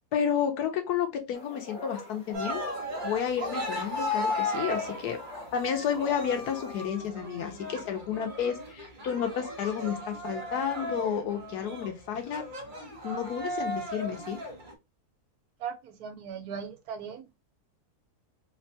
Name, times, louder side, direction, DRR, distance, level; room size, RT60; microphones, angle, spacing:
voice 1, 0.1-2.6 3.0-5.2 5.5-12.4 12.8-14.4, left 8 dB, 90° left, 1.3 m, -31 dB
sound 1, 1.3-6.8, left 2 dB, 50° left, 1.2 m, -44 dB
Cheering, 2.3-14.7, left 1 dB, 40° right, 0.8 m, -36 dB
voice 2, 15.6-17.4, right 7 dB, 75° right, 1.2 m, -38 dB
3.4 x 2.2 x 2.6 m
omnidirectional pair, 1.6 m